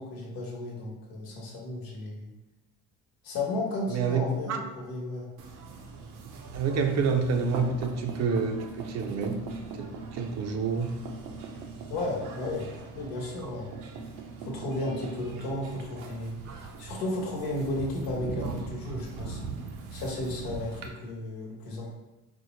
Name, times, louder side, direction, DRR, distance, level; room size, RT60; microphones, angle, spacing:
voice 1, 0.0-2.3 3.2-5.3 11.9-12.7 12.9-13.7 14.4-19.4 19.9-21.9, left 2 dB, 75° left, -2 dB, 1.2 m, -34 dB
voice 2, 3.9-4.6 6.5-9.4 9.7-10.9 13.4-13.5 16.4-16.6, right 5 dB, 45° right, 5 dB, 0.5 m, -28 dB
sound 1, 5.4-20.9, right 4 dB, 90° right, 0.6 m, -40 dB
4.2 x 2.0 x 3.1 m, 1.0 s
cardioid pair, 110°, 37 cm